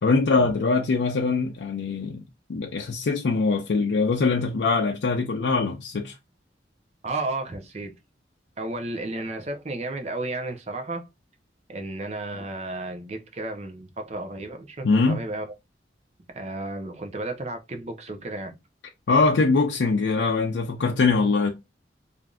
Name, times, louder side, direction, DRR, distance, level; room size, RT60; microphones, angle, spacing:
voice 1, 0.0-2.2 2.5-6.1 14.8-15.2 19.1-21.5, left 4 dB, 80° left, 0.5 m, -22 dB
voice 2, 7.0-7.9 8.6-11.1 11.7-15.5 16.3-18.5, right 2 dB, 35° right, 0.6 m, -33 dB
3.4 x 2.5 x 2.3 m
head